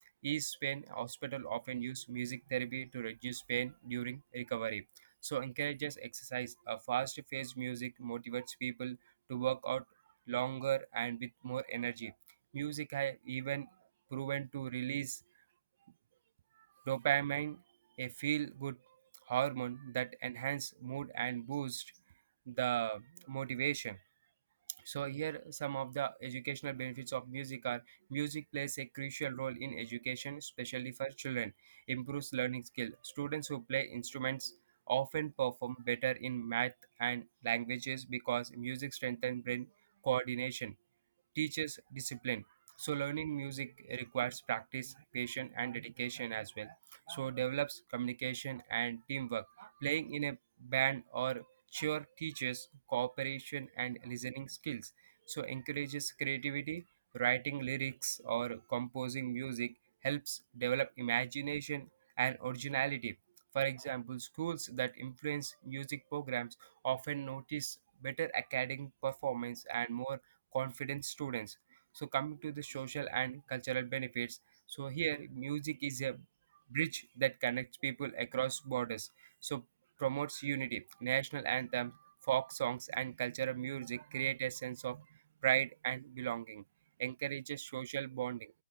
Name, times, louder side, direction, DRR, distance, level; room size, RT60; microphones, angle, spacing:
voice 1, 0.2-4.8 5.2-9.0 9.3-9.8 10.3-12.1 12.5-13.7 14.1-15.2 16.9-17.6 18.0-18.8 19.3-21.9 22.5-24.0 24.9-27.8 28.1-34.5 34.9-36.7 37.0-39.7 40.0-40.7 41.4-42.4 42.8-46.7 47.1-51.4 51.7-54.9 55.3-56.8 57.1-59.7 60.0-61.9 62.2-63.1 63.5-66.5 66.8-67.8 68.0-70.2 70.5-71.5 71.9-74.4 74.8-76.2 76.7-79.1 79.4-79.6 80.0-82.0 82.3-85.0 85.4-86.6 87.0-88.5, right 12 dB, 50° right, 0.7 m, -37 dB
open air
hypercardioid pair, 160°, 0 cm